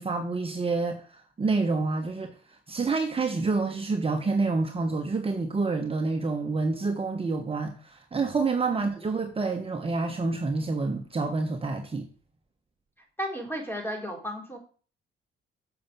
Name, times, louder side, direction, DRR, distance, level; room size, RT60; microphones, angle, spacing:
voice 1, 0.0-12.1, right 3 dB, 30° right, 1.3 m, -28 dB
voice 2, 13.2-14.6, equal, 10° left, 3.8 m, -34 dB
7.3 x 5.8 x 7.4 m
cardioid pair, 90°, 20 cm